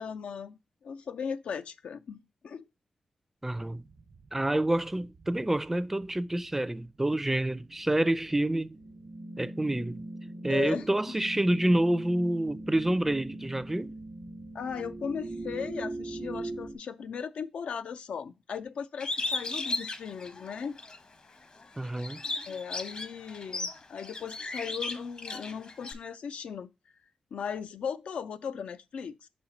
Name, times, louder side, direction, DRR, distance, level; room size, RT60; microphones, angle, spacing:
voice 1, 0.0-2.6 10.5-10.9 14.5-20.8 22.5-26.7 27.3-29.3, left 6 dB, 85° left, 0.4 m, -37 dB
voice 2, 3.4-3.8 4.3-8.8 9.4-10.1 10.4-13.9 21.8-22.2, right 1 dB, 15° right, 0.4 m, -28 dB
sound 1, 3.8-6.7 7.1-16.7, right 2 dB, 90° right, 1.0 m, -42 dB
Bird, 19.0-21.0 21.4-25.9, left 3 dB, 50° left, 0.9 m, -35 dB
5.6 x 4.4 x 3.9 m
cardioid pair, 70°, 2 cm